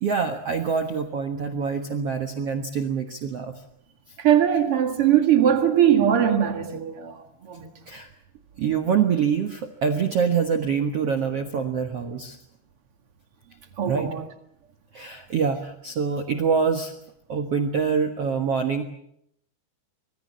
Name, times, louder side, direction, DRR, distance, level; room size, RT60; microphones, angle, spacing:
voice 1, 0.0-3.6 7.9-8.1 8.6-12.4 13.9-14.1 14.9-16.9 17.3-18.8, right 6 dB, 70° right, 1.4 m, -25 dB
voice 2, 4.2-7.7 13.8-14.2, right 10 dB, 45° right, 2.0 m, -20 dB
25.5 x 22.0 x 7.4 m
omnidirectional pair, 5.0 m